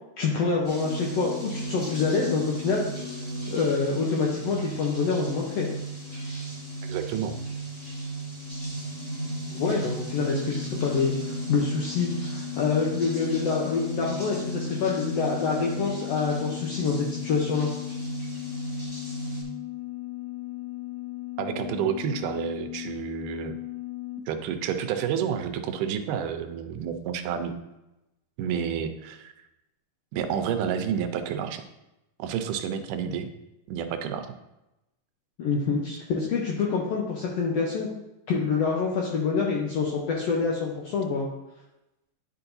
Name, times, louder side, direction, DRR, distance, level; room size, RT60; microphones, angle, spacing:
voice 1, 0.2-2.9 3.5-5.7 9.5-17.7 35.4-37.9 38.3-41.3, left 5 dB, 75° left, -2 dB, 1.5 m, -26 dB
sound 1, 0.6-19.4, right 2 dB, 50° left, 0.6 m, -35 dB
voice 2, 6.8-7.4 21.4-23.6 24.3-27.6 28.4-29.3 30.1-31.6 32.2-33.3 33.7-34.3, right 8 dB, 85° right, 8 dB, 2.1 m, -30 dB
sound 2, 8.0-24.2, left 20 dB, 65° right, 0.7 m, -38 dB
10.5 x 4.8 x 2.6 m, 0.94 s
omnidirectional pair, 3.7 m